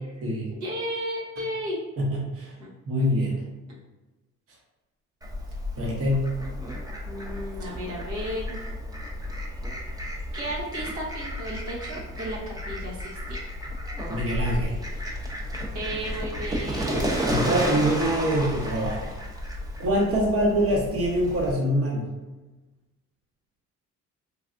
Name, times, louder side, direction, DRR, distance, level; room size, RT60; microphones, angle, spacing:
voice 1, 0.5-1.8 2.6-2.7 7.0-8.6 10.3-13.0 13.3-13.4 15.7-17.1, equal, 75° right, -5 dB, 0.9 m, -34 dB
voice 2, 2.0-2.5 2.9-3.4 5.8-6.3 14.1-14.8 17.3-19.2 19.8-22.1, equal, 50° right, -2 dB, 0.9 m, -24 dB
Fowl, 5.2-21.5, equal, 15° right, 0.6 m, -32 dB
3.4 x 2.3 x 2.5 m, 1.2 s
cardioid pair, 90°, 30 cm